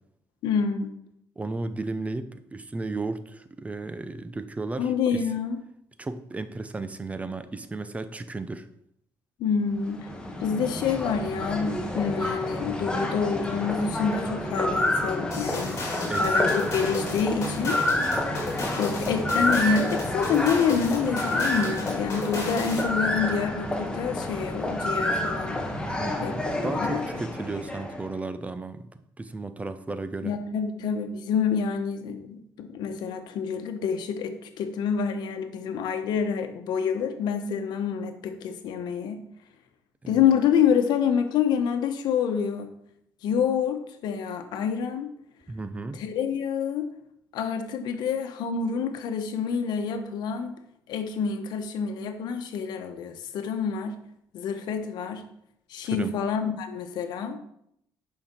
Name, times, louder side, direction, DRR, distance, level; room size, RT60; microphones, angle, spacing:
voice 1, 0.4-0.9 4.8-5.6 9.4-10.1 10.4-15.8 16.2-17.8 18.8-25.6 26.2-27.0 30.2-39.2 40.1-42.7 43.2-45.1 45.9-46.9 47.3-50.6 50.9-53.9 54.3-55.2 55.7-57.4, left 6 dB, 85° left, 8 dB, 1.1 m, -27 dB
voice 2, 1.4-5.2 6.0-8.7 16.1-16.4 25.9-28.9 29.2-30.3 40.0-40.2 45.5-46.0 55.9-56.1, right 3 dB, 20° right, 11 dB, 0.7 m, -34 dB
sound 1, 9.7-28.1, left 1 dB, 10° left, 1.5 m, -29 dB
sound 2, 15.3-23.0, left 2 dB, 40° left, 3.7 m, -34 dB
10.5 x 5.7 x 4.5 m, 0.74 s
cardioid pair, 105°, 7 cm